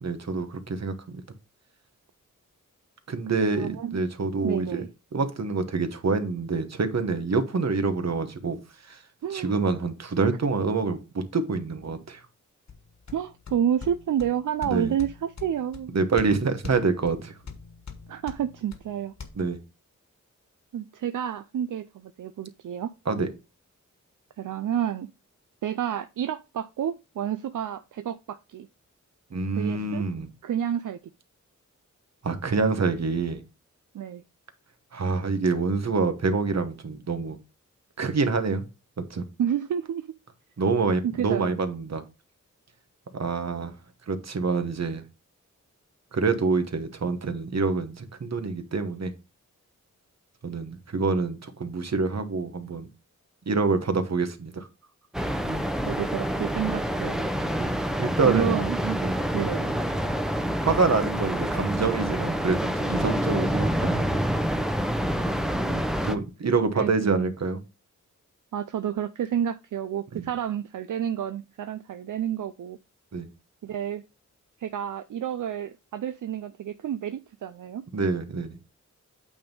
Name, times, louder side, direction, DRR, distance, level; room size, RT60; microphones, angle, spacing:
voice 1, 0.0-1.2 3.1-4.8 5.1-8.6 8.9-9.0 9.3-12.2 14.6-14.9 15.9-17.3 19.3-19.6 23.1-23.3 29.3-30.3 32.2-33.4 34.9-37.4 38.0-38.6 39.1-39.2 40.6-42.0 43.1-43.7 44.1-45.0 46.1-49.1 50.4-52.9 53.5-54.7 57.6-57.7 58.0-58.6 59.0-59.2 60.6-64.1 65.6-67.6 70.1-70.3 73.1-73.3 77.9-78.6, right 4 dB, 60° right, 1.2 m, -26 dB
voice 2, 3.4-4.0 4.4-4.9 9.2-9.5 13.1-15.9 18.1-19.1 20.7-22.9 24.4-25.1 25.6-28.7 29.6-30.0 30.4-31.0 33.9-34.2 39.4-40.1 41.0-41.6 55.5-57.3 58.2-59.0 59.3-59.7 66.7-67.3 68.5-72.8 73.6-74.0 74.6-77.8, right 9 dB, 80° right, 0.5 m, -30 dB
sound 1, 12.7-19.3, left 5 dB, 60° left, 1.4 m, -44 dB
sound 2, 55.1-66.2, equal, ahead, 0.8 m, -27 dB
8.6 x 3.6 x 5.3 m
wide cardioid pair, 95°, 31 cm